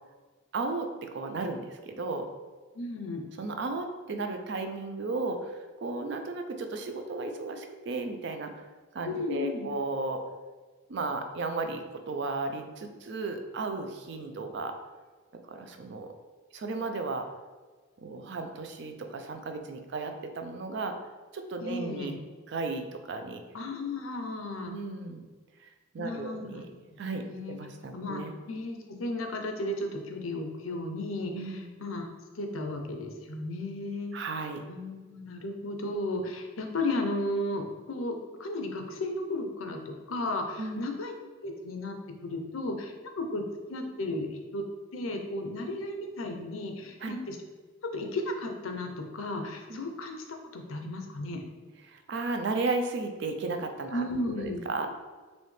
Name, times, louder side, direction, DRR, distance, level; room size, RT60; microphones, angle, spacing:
voice 1, 0.5-2.3 3.4-8.5 8.9-10.2 10.9-14.8 15.4-16.1 16.5-17.3 18.0-20.9 21.3-22.2 22.5-23.4 24.7-25.3 25.6-25.7 25.9-26.7 27.0-28.3 31.3-31.7 34.1-34.6 40.6-40.8 47.0-47.1 49.7-49.8 51.9-54.0 54.4-54.9, right 3 dB, 55° right, 6 dB, 0.4 m, -34 dB
voice 2, 2.7-3.2 9.0-9.7 21.6-22.1 23.5-24.7 26.0-26.5 27.1-27.6 27.9-32.1 32.3-34.1 34.7-41.1 41.4-42.0 42.2-43.4 43.7-44.6 44.9-47.4 47.9-51.4 53.9-54.6, left 2 dB, 80° left, 4 dB, 0.6 m, -34 dB
4.1 x 3.2 x 3.2 m, 1.4 s
head